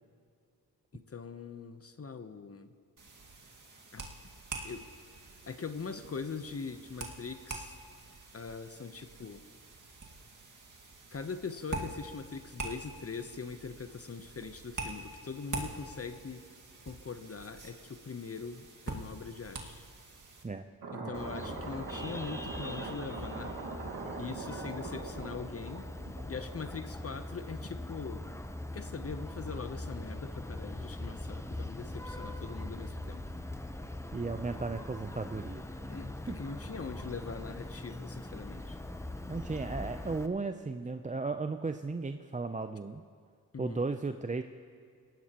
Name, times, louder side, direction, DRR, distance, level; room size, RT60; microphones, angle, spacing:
voice 1, 0.9-2.7 3.9-4.1 4.6-4.9 5.4-7.8 8.3-9.4 11.1-16.4 16.8-19.8 20.9-23.6 24.2-25.8 26.3-28.2 28.7-33.2 35.9-38.8 43.5-43.8, left 5 dB, 40° left, 9 dB, 0.9 m, -42 dB
sound 1, 3.0-20.4, right 3 dB, 50° right, 2.0 m, -45 dB
sound 2, 20.8-26.6, right 3 dB, 80° right, 1.9 m, -41 dB
Vehicle horn car horn honking, 21.1-40.3, left 1 dB, 5° left, 0.9 m, -42 dB
voice 2, 34.1-35.6 36.3-36.4 39.3-43.0 43.6-44.4, right 3 dB, 20° right, 8 dB, 0.6 m, -35 dB
18.5 x 16.5 x 3.0 m, 2.3 s
cardioid pair, 50°, 38 cm